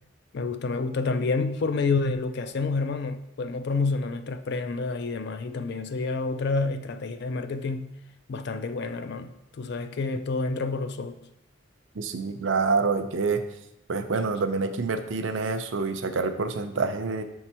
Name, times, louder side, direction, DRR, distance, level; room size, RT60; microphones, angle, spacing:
voice 1, 0.3-7.9 8.3-11.1, left 3 dB, 55° left, 0.4 m, -29 dB
voice 2, 12.0-13.4 13.9-17.2, right 4 dB, 70° right, 0.6 m, -27 dB
6.0 x 4.6 x 4.3 m
head